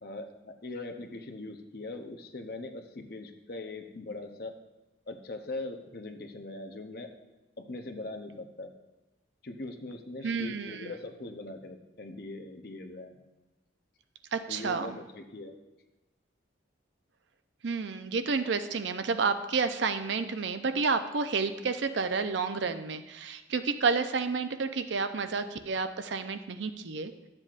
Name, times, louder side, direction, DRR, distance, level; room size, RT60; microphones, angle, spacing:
voice 1, 0.0-4.5 5.1-7.1 7.6-8.7 9.4-13.2 14.5-15.6, left 2 dB, 50° left, 5 dB, 0.7 m, -41 dB
voice 2, 10.2-10.9 14.3-15.0 17.6-27.1, right 4 dB, 70° right, 9 dB, 0.5 m, -30 dB
11.5 x 7.6 x 2.5 m, 1.0 s
head